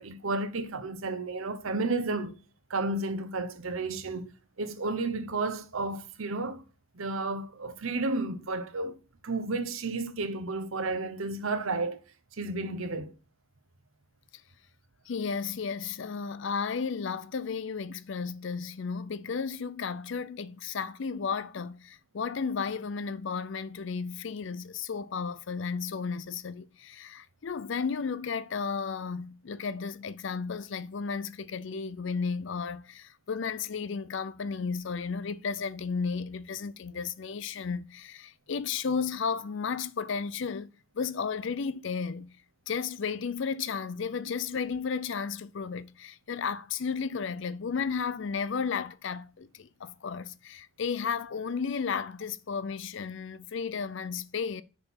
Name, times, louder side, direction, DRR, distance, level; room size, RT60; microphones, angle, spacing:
voice 1, 0.0-2.4 2.7-4.3 4.6-6.6 6.9-9.0 9.2-12.0 12.4-13.1, right 3 dB, 75° right, 0.9 m, -32 dB
voice 2, 15.1-40.7 40.9-42.3 42.7-54.6, left 5 dB, 60° left, 0.5 m, -33 dB
6.7 x 4.3 x 5.4 m
head